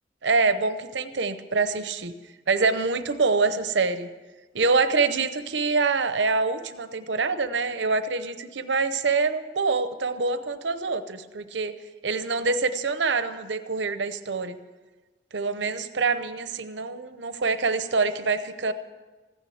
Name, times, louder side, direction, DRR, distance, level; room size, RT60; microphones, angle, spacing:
voice 1, 0.2-2.1 2.5-4.1 4.5-11.7 12.0-14.6 15.3-18.7, right 4 dB, 85° right, 11 dB, 0.8 m, -25 dB
15.0 x 10.0 x 7.8 m, 1.3 s
head